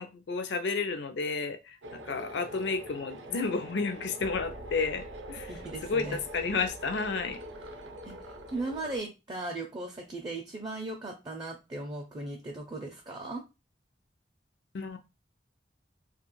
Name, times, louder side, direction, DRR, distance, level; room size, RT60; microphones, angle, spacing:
voice 1, 0.0-5.5 5.8-7.4 14.7-15.0, left 4 dB, 70° left, 0.4 m, -32 dB
sound 1, 1.8-9.0, right 1 dB, 85° right, 0.5 m, -44 dB
voice 2, 5.5-6.2 8.0-8.2 8.5-13.4, right 2 dB, 25° right, 0.4 m, -37 dB
2.3 x 2.3 x 3.0 m
head